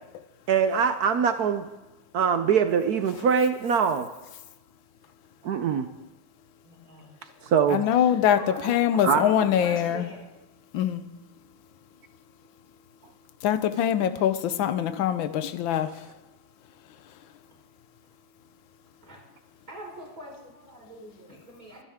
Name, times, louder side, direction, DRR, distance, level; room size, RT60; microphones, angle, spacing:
voice 1, 0.5-1.7 2.1-4.1 5.4-5.9 7.5-7.8 9.0-9.2, right 7 dB, 65° right, 9 dB, 0.9 m, -23 dB
voice 2, 6.6-7.1 7.9-10.2 19.0-19.2 19.7-21.8, right 1 dB, 40° right, -3 dB, 5.5 m, -42 dB
voice 3, 7.7-8.4 8.6-10.1 10.7-11.0 13.4-15.9, left 10 dB, 70° left, 12 dB, 1.5 m, -23 dB
24.0 x 10.0 x 3.6 m, 1.1 s
omnidirectional pair, 2.3 m